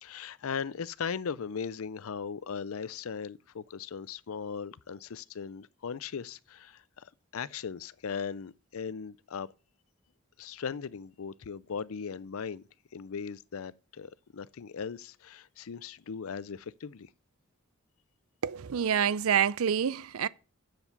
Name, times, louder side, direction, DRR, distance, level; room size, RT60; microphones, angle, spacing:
voice 1, 0.0-9.5 10.4-12.6 12.9-17.1, left 6 dB, 80° left, 0.5 m, -38 dB
voice 2, 18.4-20.3, right 8 dB, 80° right, 0.5 m, -27 dB
7.7 x 7.1 x 8.1 m
head